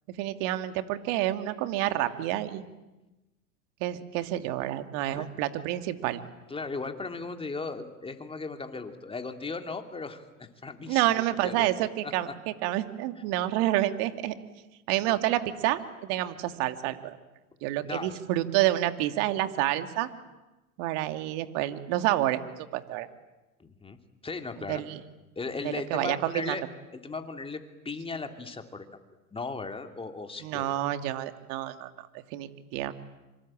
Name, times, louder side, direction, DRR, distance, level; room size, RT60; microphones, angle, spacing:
voice 1, 0.1-2.7 3.8-6.2 10.9-14.3 14.9-17.2 17.6-20.1 20.8-22.4 22.7-23.1 24.7-25.0 25.6-26.6 30.4-32.9, right 14 dB, 55° right, 9 dB, 2.7 m, -29 dB
voice 2, 6.5-11.7 16.5-16.6 17.8-18.1 23.6-24.0 24.2-24.8 25.4-26.6 26.9-28.9 29.3-30.7, left 4 dB, 10° left, 6 dB, 3.0 m, -37 dB
26.5 x 25.0 x 8.9 m, 1.0 s
hypercardioid pair, 105°, 45 cm